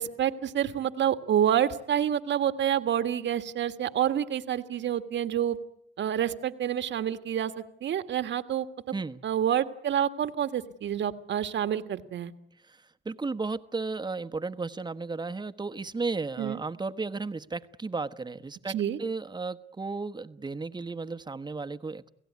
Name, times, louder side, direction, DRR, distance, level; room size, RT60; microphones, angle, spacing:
voice 1, 0.0-5.6 6.0-8.7 9.2-12.3 16.4-16.6 18.7-19.0, right 10 dB, 65° right, 10 dB, 1.8 m, -28 dB
voice 2, 8.9-9.2 12.6-22.1, right 3 dB, 20° right, 9 dB, 1.2 m, -34 dB
29.0 x 17.5 x 9.6 m, 0.75 s
cardioid pair, 90°, 20 cm